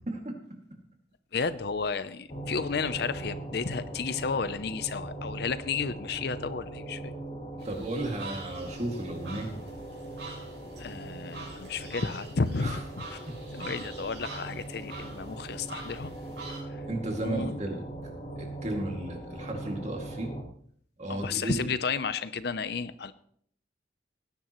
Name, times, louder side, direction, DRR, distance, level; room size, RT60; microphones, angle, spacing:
voice 1, 1.3-7.1 10.8-13.2 13.5-16.1 16.7-16.8 17.2-17.6 21.1-23.1, left 5 dB, 60° left, 14 dB, 0.6 m, -32 dB
sound 1, 2.3-20.4, right 2 dB, 40° left, 2.2 m, -41 dB
voice 2, 7.6-9.6 12.6-12.8 13.3-13.4 16.9-17.8 18.4-20.4 21.0-21.6, right 2 dB, 40° right, 2 dB, 2.3 m, -34 dB
sound 2, 7.6-16.6, right 2 dB, 70° right, 5.6 m, -45 dB
18.5 x 10.5 x 3.1 m, 0.62 s
head